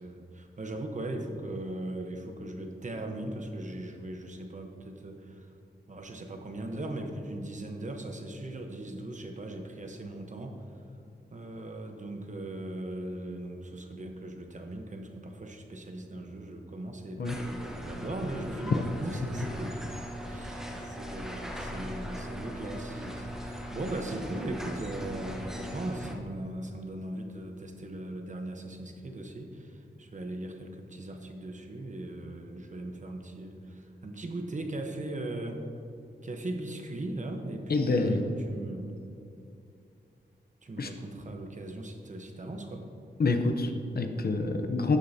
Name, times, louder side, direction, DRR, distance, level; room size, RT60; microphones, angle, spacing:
voice 1, 0.0-5.5 5.9-10.6 11.3-19.8 20.2-35.6 36.2-39.0 40.6-42.9, right 1 dB, 40° right, 4 dB, 1.0 m, -39 dB
sound 1, 17.2-26.1, equal, 5° right, 1.0 m, -39 dB
voice 2, 37.7-38.3 40.8-40.9 43.2-45.0, left 3 dB, 55° left, 5 dB, 0.8 m, -27 dB
12.0 x 8.4 x 2.8 m, 2.6 s
wide cardioid pair, 80°, 18 cm